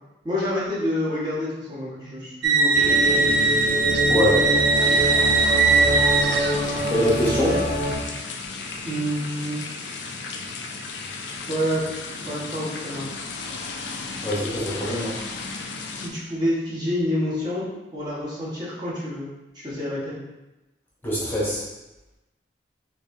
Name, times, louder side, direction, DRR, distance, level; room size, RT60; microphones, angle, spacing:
voice 1, 0.2-3.2 8.8-9.6 11.5-13.1 15.9-19.3 19.5-20.2, equal, 25° right, -8 dB, 1.2 m, -28 dB
sound 1, 2.4-6.9, right 4 dB, 80° right, 0.3 m, -20 dB
sound 2, 2.7-7.9, equal, 35° left, 0.6 m, -25 dB
voice 2, 4.1-4.4 6.9-7.6 14.2-15.1 21.0-21.6, left 1 dB, 10° left, -8 dB, 0.9 m, -23 dB
sound 3, 4.7-16.1, left 4 dB, 85° left, 0.4 m, -35 dB
4.6 x 2.8 x 2.6 m, 1.0 s
head